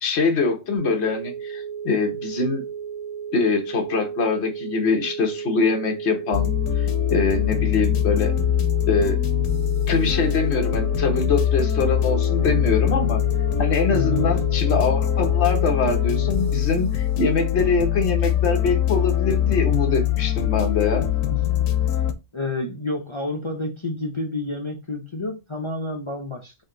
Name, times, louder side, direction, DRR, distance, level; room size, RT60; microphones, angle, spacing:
voice 1, 0.0-2.6 3.3-8.3 8.9-9.2 9.9-13.2 13.6-21.1, left 4 dB, 60° left, 1.3 m, -23 dB
sound 1, 0.8-16.6, right 7 dB, 15° right, 1.6 m, -34 dB
sound 2, 6.3-22.1, left 12 dB, 90° left, 1.1 m, -22 dB
voice 2, 13.9-14.3 21.3-21.4 22.3-26.6, left 2 dB, 30° left, 0.6 m, -29 dB
4.2 x 2.8 x 3.8 m
omnidirectional pair, 1.3 m